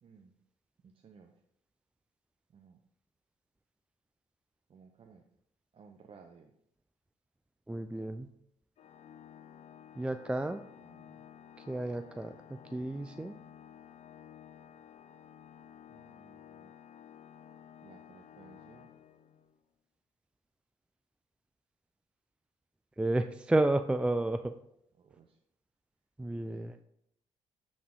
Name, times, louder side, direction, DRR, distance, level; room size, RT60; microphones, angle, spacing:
voice 1, 0.0-0.3 0.8-1.3 2.5-2.8 4.7-5.2 5.7-6.5 10.4-11.3 15.9-16.7 17.8-18.9 25.0-25.4 26.4-26.8, right 5 dB, 45° right, 3 dB, 0.7 m, -58 dB
voice 2, 7.7-8.3 10.0-10.6 11.6-13.4 23.0-24.5 26.2-26.7, right 2 dB, 10° right, 9 dB, 0.3 m, -31 dB
Organ, 8.8-19.6, left 9 dB, 55° left, 0.4 m, -54 dB
8.4 x 4.3 x 3.7 m, 0.75 s
cardioid pair, 80°, 13 cm